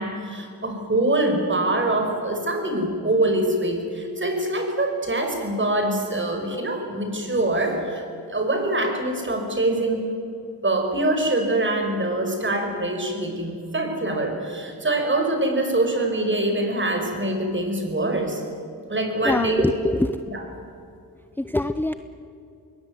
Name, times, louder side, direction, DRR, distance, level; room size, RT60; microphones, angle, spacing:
voice 1, 0.0-8.0 8.3-10.0 10.6-18.4 18.9-19.7 20.3-20.5, right 1 dB, 30° right, 4 dB, 5.5 m, -24 dB
voice 2, 19.3-20.2 21.4-21.9, left 1 dB, 5° left, 11 dB, 0.7 m, -23 dB
22.0 x 19.5 x 9.7 m, 2.5 s
cardioid pair, 90°, 37 cm